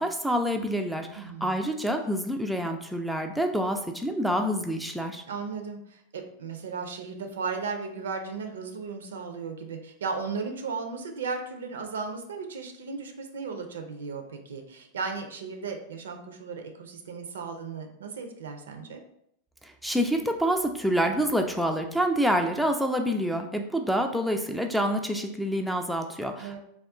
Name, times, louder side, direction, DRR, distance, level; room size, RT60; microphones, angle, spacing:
voice 1, 0.0-5.2 19.6-26.6, equal, ahead, 3 dB, 0.3 m, -27 dB
voice 2, 1.1-1.6 5.3-19.0 26.4-26.6, right 5 dB, 65° right, 5 dB, 0.5 m, -35 dB
3.6 x 2.3 x 3.4 m, 0.73 s
figure-of-eight pair, 90°, 0 cm